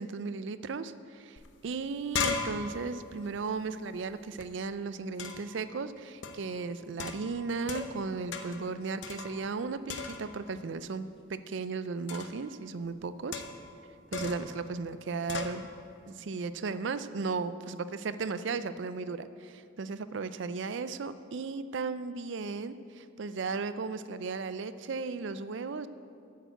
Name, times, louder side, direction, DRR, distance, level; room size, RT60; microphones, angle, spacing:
voice 1, 0.0-13.4 14.1-15.7 16.1-25.9, right 4 dB, 65° right, 13 dB, 0.4 m, -36 dB
sound 1, 1.4-1.5 1.7-4.5 5.2-5.6 6.2-6.5 7.0-8.0 8.3-8.7 9.0-9.6 9.9-10.5 12.1-12.4 13.3-13.7 14.1-14.5 15.3-15.6, left 5 dB, 65° left, 0.7 m, -37 dB
9.2 x 6.6 x 7.8 m, 2.5 s
head